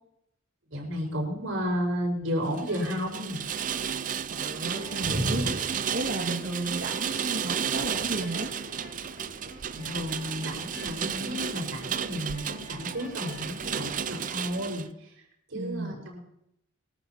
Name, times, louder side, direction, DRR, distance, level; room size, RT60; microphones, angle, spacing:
voice 1, 0.7-3.4 5.0-5.5 5.9-6.0 9.7-15.2 15.5-16.2, equal, 85° right, -1 dB, 5.1 m, -32 dB
Rain, 2.5-14.9, right 8 dB, 40° right, 0.4 m, -33 dB
sound 1, 2.7-14.9, left 4 dB, 60° left, 3.1 m, -50 dB
voice 2, 4.3-5.5 5.9-8.5 15.5-16.0, right 1 dB, 60° right, -4 dB, 2.0 m, -33 dB
22.0 x 13.5 x 2.9 m, 0.78 s
head